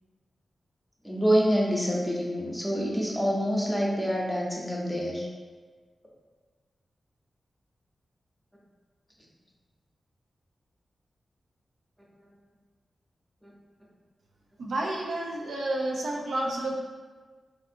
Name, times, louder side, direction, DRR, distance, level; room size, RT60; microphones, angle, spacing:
voice 1, 1.0-5.3 13.4-13.5, equal, 5° left, -3 dB, 0.8 m, -26 dB
voice 2, 14.6-16.7, right 1 dB, 80° right, -2 dB, 0.4 m, -30 dB
3.5 x 2.6 x 2.5 m, 1.4 s
cardioid pair, 50°, 0 cm